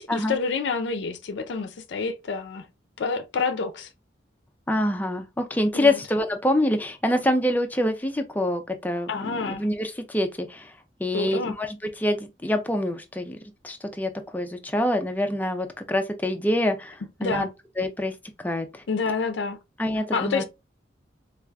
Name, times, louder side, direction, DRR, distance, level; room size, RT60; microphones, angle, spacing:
voice 1, 0.0-2.7 3.0-3.9 5.7-6.0 9.1-9.7 11.1-11.6 17.2-17.5 18.9-19.6 20.1-20.5, left 4 dB, 70° left, 0.5 m, -28 dB
voice 2, 4.7-10.7 11.0-13.4 13.6-17.5 17.8-18.1 18.4-18.8 19.8-20.5, left 1 dB, 10° left, 0.4 m, -26 dB
4.7 x 2.3 x 2.2 m
head